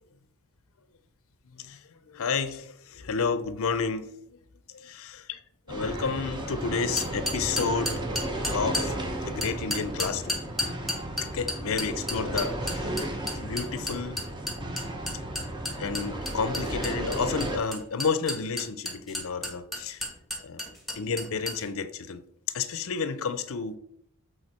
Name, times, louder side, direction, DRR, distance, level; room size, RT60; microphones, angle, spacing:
voice 1, 2.1-4.2 4.7-5.4 5.7-8.0 8.5-10.4 11.2-13.0 13.3-14.2 15.8-20.0 20.4-20.6 20.9-22.2 22.5-23.8, left 5 dB, 65° left, 12 dB, 0.5 m, -31 dB
sound 1, 5.7-17.6, right 1 dB, 20° right, 1.0 m, -34 dB
sound 2, 7.0-8.9 9.4-21.6, left 1 dB, ahead, 1.6 m, -32 dB
7.9 x 4.0 x 4.2 m, 0.70 s
head